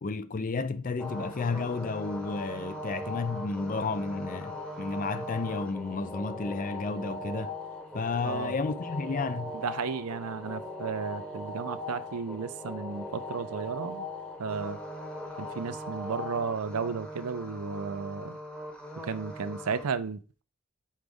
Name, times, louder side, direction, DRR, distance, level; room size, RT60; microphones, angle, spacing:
voice 1, 0.0-7.5 7.9-9.5, left 4 dB, 35° left, 0.4 m, -32 dB
sound 1, 1.0-19.9, left 1 dB, 5° left, 1.1 m, -39 dB
voice 2, 8.2-8.5 9.5-14.1 14.4-14.8 15.4-18.4 19.0-20.4, right 5 dB, 80° right, 0.5 m, -34 dB
6.4 x 5.1 x 3.5 m
head